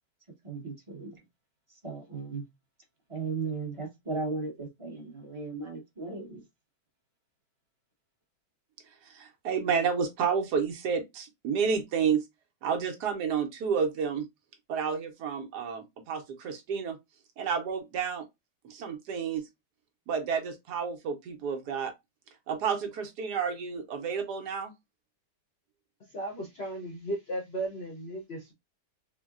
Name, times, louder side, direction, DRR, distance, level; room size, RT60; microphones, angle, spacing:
voice 1, 0.4-1.2 1.7-2.4 3.1-6.4, right 4 dB, 25° right, 0.7 m, -36 dB
voice 2, 9.0-12.2 12.6-14.3 14.7-17.0 17.4-18.3 18.6-19.5 20.1-21.9 22.5-24.7, right 6 dB, 70° right, 1.1 m, -30 dB
voice 3, 26.0-28.5, right 1 dB, 55° left, 0.7 m, -36 dB
3.8 x 2.1 x 2.3 m
omnidirectional pair, 1.9 m